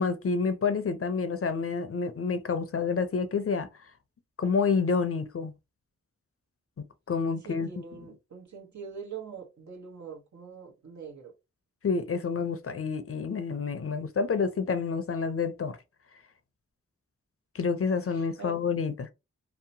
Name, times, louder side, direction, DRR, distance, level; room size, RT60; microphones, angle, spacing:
voice 1, 0.0-3.7 4.4-5.5 7.1-7.7 11.8-15.8 17.5-19.1, left 5 dB, 50° left, 0.5 m, -28 dB
voice 2, 7.4-11.3 18.1-18.6, right 6 dB, 70° right, 1.0 m, -43 dB
2.8 x 2.0 x 2.7 m
cardioid pair, 45°, 30 cm